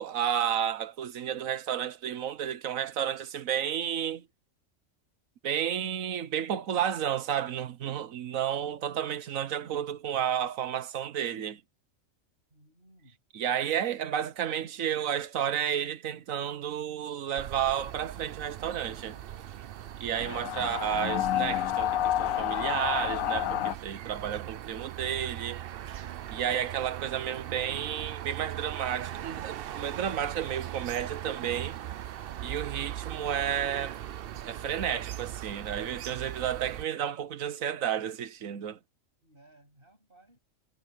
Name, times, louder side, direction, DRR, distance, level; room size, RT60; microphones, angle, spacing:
voice 1, 0.0-4.3 5.4-11.6 13.3-19.2 20.0-25.6 26.3-31.8 32.4-34.0 34.4-38.8, right 9 dB, 80° right, 1.3 m, -32 dB
voice 2, 12.5-13.6 39.2-40.4, right 1 dB, 40° right, 7.9 m, -60 dB
sound 1, 17.4-36.9, right 11 dB, 60° right, 0.6 m, -40 dB
sound 2, 20.2-23.7, left 12 dB, 85° left, 1.1 m, -29 dB
omnidirectional pair, 1.4 m